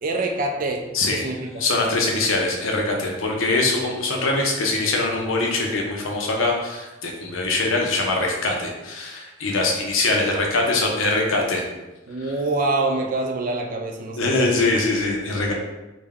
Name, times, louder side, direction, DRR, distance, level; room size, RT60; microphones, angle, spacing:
voice 1, 0.0-0.9 1.1-1.7 10.2-10.4 12.1-14.5, right 2 dB, 40° right, 3 dB, 0.4 m, -26 dB
voice 2, 1.6-11.6 14.2-15.5, left 2 dB, 80° left, 0 dB, 0.7 m, -23 dB
3.5 x 2.2 x 3.5 m, 1.1 s
head